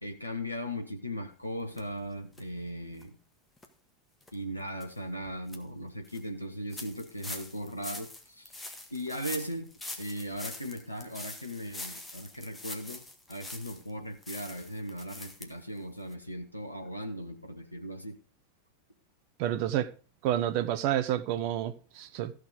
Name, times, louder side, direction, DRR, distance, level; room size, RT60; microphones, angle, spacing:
voice 1, 0.0-3.1 4.3-8.5 8.9-9.7 10.0-13.0 13.3-18.2, equal, 85° left, 1.4 m, -38 dB
sound 1, 1.8-1.9 2.3-2.4 2.9-3.0 3.6-3.7 4.2-4.3 4.8-4.9 5.3-5.6 6.0-6.2 6.7-13.9 14.2-15.5 15.8-15.9 16.1-16.2, left 2 dB, 10° left, 1.7 m, -44 dB
voice 2, 19.4-19.9 20.2-22.3, right 12 dB, 45° right, 0.9 m, -29 dB
14.5 x 6.5 x 5.1 m
figure-of-eight pair, 90°, 0 cm